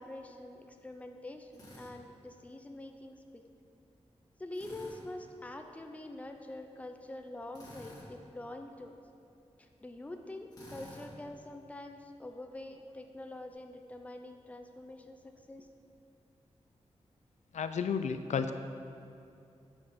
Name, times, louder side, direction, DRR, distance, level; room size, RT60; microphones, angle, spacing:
voice 1, 0.0-3.4 4.4-8.9 9.6-15.7, left 1 dB, 10° left, 5 dB, 0.5 m, -45 dB
Drill, 1.5-1.9 4.5-5.0 7.5-8.1 10.5-11.1, left 1 dB, 30° left, 1.7 m, -50 dB
voice 2, 17.5-18.5, left 6 dB, 90° left, 9 dB, 0.4 m, -32 dB
8.3 x 5.3 x 5.5 m, 2.6 s
wide cardioid pair, 175°, 12 cm